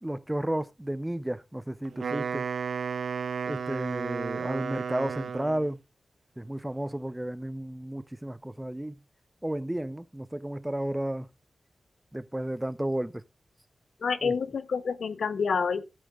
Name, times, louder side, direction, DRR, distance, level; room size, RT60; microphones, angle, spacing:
voice 1, 0.0-2.4 3.5-5.8 6.4-8.9 9.4-11.3 12.1-13.2 14.2-14.3, right 1 dB, 10° right, 0.6 m, -32 dB
Wind instrument woodwind instrument, 1.8-5.7, right 6 dB, 80° right, 0.4 m, -33 dB
voice 2, 14.0-15.9, left 5 dB, 80° left, 0.8 m, -28 dB
15.5 x 8.4 x 2.4 m
wide cardioid pair, 115°, 0 cm